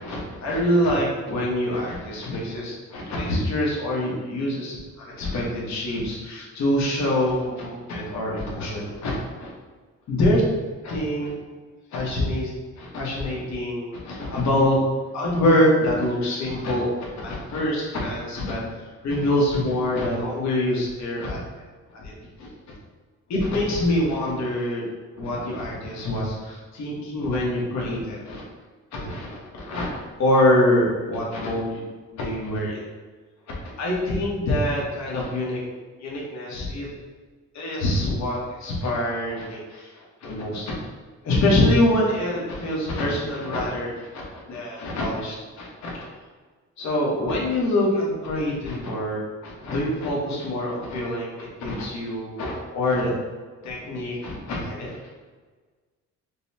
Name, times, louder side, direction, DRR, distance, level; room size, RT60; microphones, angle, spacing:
voice 1, 0.0-9.5 10.1-10.4 10.8-11.4 11.9-12.5 12.8-14.8 15.1-18.6 19.0-21.4 22.0-22.1 22.4-22.5 23.3-24.9 25.2-28.4 28.9-29.9 30.2-31.8 32.1-32.8 33.8-35.6 36.0-36.9 37.5-39.9 40.2-40.7 41.2-46.0 46.8-53.1 53.6-55.0, left 1 dB, 65° left, -4 dB, 1.1 m, -25 dB
5.3 x 2.1 x 2.7 m, 1.4 s
cardioid pair, 90°, 30 cm